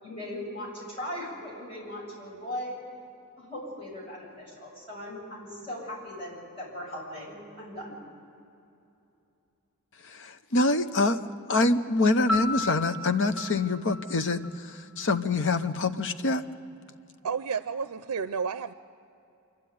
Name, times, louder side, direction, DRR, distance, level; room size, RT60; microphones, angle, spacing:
voice 1, 0.0-2.8 3.4-8.0, left 1 dB, 25° left, -5 dB, 7.3 m, -38 dB
voice 2, 10.1-11.2 11.5-16.4, left 2 dB, 55° left, 9 dB, 0.8 m, -25 dB
Piano, 12.3-15.1, left 2 dB, ahead, 1.5 m, -34 dB
voice 3, 17.2-18.7, right 6 dB, 85° right, 12 dB, 0.5 m, -31 dB
27.5 x 12.0 x 9.3 m, 2.7 s
head